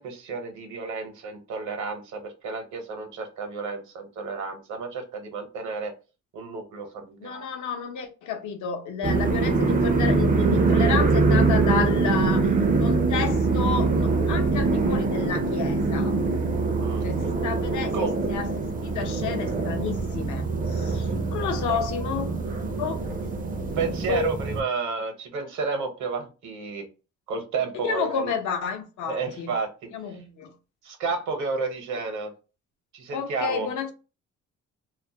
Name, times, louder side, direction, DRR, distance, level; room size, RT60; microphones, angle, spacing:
voice 1, 0.0-5.9 6.3-7.4 16.8-17.1 17.9-18.1 21.7-21.8 23.6-26.9 27.3-28.3 29.0-29.7 30.1-30.2 30.8-32.3 32.9-33.7, right 4 dB, 70° right, 0.8 m, -31 dB
voice 2, 7.2-12.5 12.8-16.1 17.0-18.5 18.8-22.4 22.8-23.2 24.1-24.3 27.9-29.5 29.9-30.5 33.1-33.9, left 6 dB, 75° left, 0.7 m, -31 dB
sound 1, 9.0-24.6, right 3 dB, 30° right, 0.4 m, -24 dB
2.3 x 2.0 x 2.7 m
cardioid pair, 90°, 30 cm